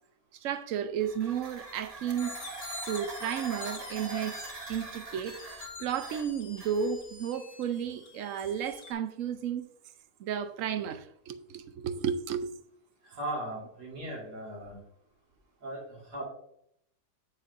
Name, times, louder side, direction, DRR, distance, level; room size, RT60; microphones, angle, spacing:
voice 1, 0.4-2.4 2.9-4.4 4.7-5.4 5.8-9.7 10.2-12.5, right 8 dB, 65° right, 1.0 m, -33 dB
sound 1, 1.0-7.1, right 3 dB, 25° right, 1.1 m, -43 dB
sound 2, 2.1-8.9, left 3 dB, 70° left, 2.1 m, -46 dB
voice 2, 13.0-14.8 15.6-16.2, right 1 dB, 85° right, 2.7 m, -38 dB
7.6 x 7.2 x 2.6 m
omnidirectional pair, 1.7 m